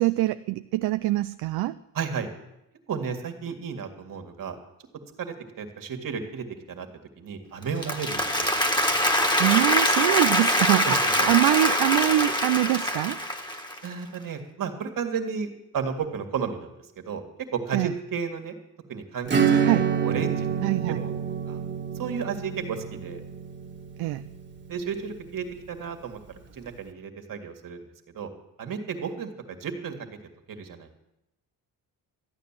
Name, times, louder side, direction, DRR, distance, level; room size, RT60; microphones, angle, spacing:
voice 1, 0.0-1.7 9.4-13.2 17.7-17.9 19.6-19.9 20.6-21.0 24.0-24.3, right 16 dB, 80° right, 11 dB, 0.5 m, -24 dB
voice 2, 1.9-2.3 2.9-4.6 5.2-6.9 7.2-8.5 10.8-11.3 13.8-17.2 17.5-18.5 18.9-19.7 20.0-20.5 20.9-21.1 21.5-21.6 22.0-23.2 24.7-26.2 26.5-27.9 28.1-28.3 28.6-30.0 30.5-30.9, right 6 dB, 60° right, 5 dB, 2.0 m, -33 dB
Applause, 7.6-13.9, left 1 dB, 10° left, 1.6 m, -24 dB
Acoustic guitar / Strum, 19.3-25.5, right 7 dB, 30° right, 1.7 m, -27 dB
13.5 x 9.4 x 7.4 m, 0.87 s
cardioid pair, 85°, 37 cm